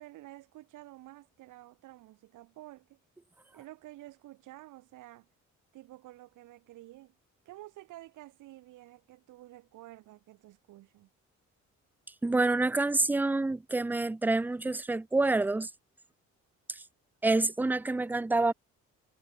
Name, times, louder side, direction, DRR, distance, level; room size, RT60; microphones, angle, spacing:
voice 1, 0.0-3.0 3.5-5.3 5.7-7.1 7.4-11.1, right 16 dB, 85° right, 1.4 m, -50 dB
voice 2, 12.2-15.7 17.2-18.5, right 2 dB, 5° right, 0.3 m, -27 dB
cardioid pair, 90°, 30 cm